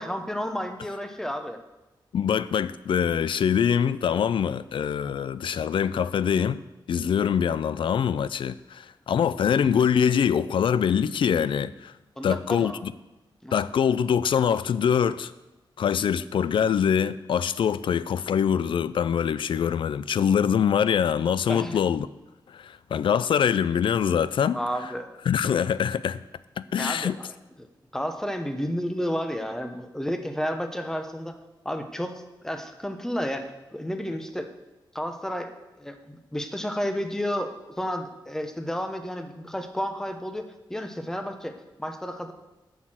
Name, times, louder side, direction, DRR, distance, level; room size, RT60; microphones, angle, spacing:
voice 1, 0.0-1.6 12.2-12.8 13.4-13.6 21.5-21.8 24.5-25.1 26.8-27.3 27.6-31.4 31.6-34.5 34.9-35.5 35.8-42.3, equal, 5° left, 0.8 m, -31 dB
voice 2, 2.1-6.6 6.9-11.9 12.2-12.9 13.5-15.3 15.8-22.1 22.5-24.6 25.3-26.2 26.6-27.2, left 8 dB, 75° left, 0.4 m, -24 dB
7.9 x 6.3 x 7.7 m
wide cardioid pair, 135°, 9 cm